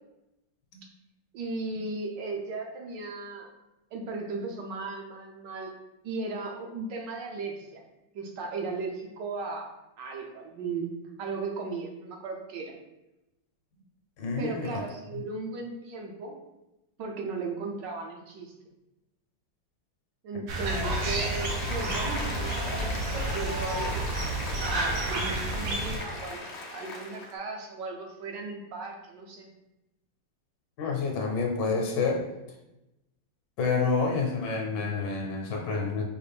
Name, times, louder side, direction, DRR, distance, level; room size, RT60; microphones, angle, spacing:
voice 1, 1.3-3.5 3.9-5.7 6.0-7.8 8.1-10.9 11.2-12.7 14.4-16.3 17.0-18.5 20.2-24.0 24.6-26.4 26.7-29.5, right 3 dB, 75° right, 1 dB, 1.3 m, -36 dB
voice 2, 14.2-14.8 30.8-32.2 33.6-36.0, left 4 dB, 70° left, 1 dB, 1.3 m, -28 dB
Applause, 20.5-27.3, left 2 dB, 55° left, 0.7 m, -37 dB
sound 1, 20.5-26.0, right 2 dB, 90° right, 1.5 m, -30 dB
5.0 x 2.5 x 3.4 m, 0.93 s
omnidirectional pair, 2.0 m